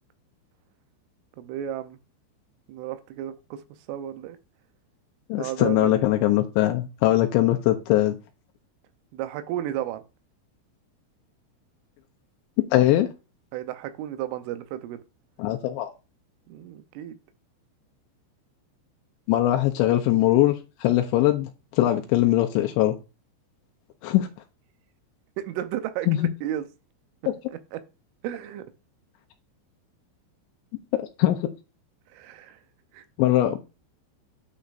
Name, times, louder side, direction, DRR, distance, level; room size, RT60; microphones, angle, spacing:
voice 1, 1.4-2.0 2.7-3.6 3.9-4.4 5.4-5.9 9.1-10.0 13.5-15.0 16.5-17.2 25.4-26.7 27.7-27.8 28.2-28.6 32.1-32.6 32.9-33.0, right 12 dB, 90° right, 3.3 m, -33 dB
voice 2, 5.3-8.2 12.7-13.1 15.4-15.9 19.3-20.6 20.8-23.0 24.0-24.3 26.1-26.2 31.2-31.4 33.2-33.6, left 14 dB, 80° left, 2.7 m, -21 dB
9.6 x 6.5 x 2.5 m
omnidirectional pair, 5.5 m